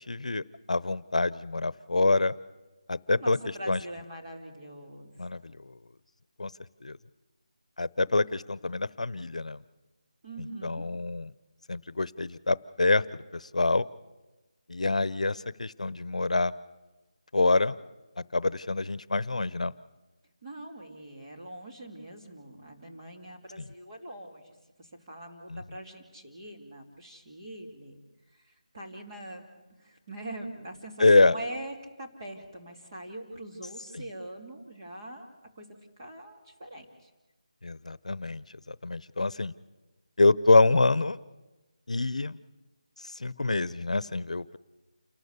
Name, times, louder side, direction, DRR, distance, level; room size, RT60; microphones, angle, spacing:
voice 1, 0.1-2.3 2.9-3.4 3.7-3.8 5.2-5.7 6.4-6.5 6.8-7.0 7.8-9.6 10.6-11.3 11.7-13.9 14.7-16.5 17.3-17.8 18.3-19.7 25.5-25.6 31.0-31.3 33.9-34.0 37.6-39.5 40.2-41.2 41.9-42.4 43.0-44.6, left 3 dB, 75° left, 19 dB, 0.7 m, -26 dB
voice 2, 3.1-5.4 10.2-10.8 20.4-28.0 28.3-29.4 29.8-35.3 35.5-35.7 36.0-37.1, right 1 dB, 30° right, 0 dB, 2.8 m, -43 dB
28.5 x 12.5 x 8.2 m, 1.1 s
figure-of-eight pair, 175°, 4 cm